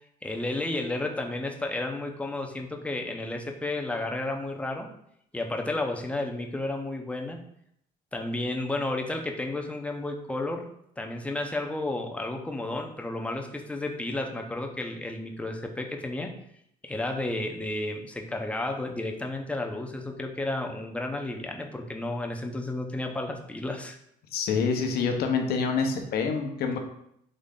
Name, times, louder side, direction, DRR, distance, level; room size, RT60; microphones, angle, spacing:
voice 1, 0.2-4.9 5.3-7.4 8.1-10.6 11.0-16.3 16.8-24.0, left 2 dB, 5° left, 3 dB, 0.6 m, -32 dB
voice 2, 24.3-26.8, left 5 dB, 70° left, 4 dB, 0.8 m, -26 dB
3.8 x 3.2 x 3.6 m, 0.73 s
cardioid pair, 110°, 17 cm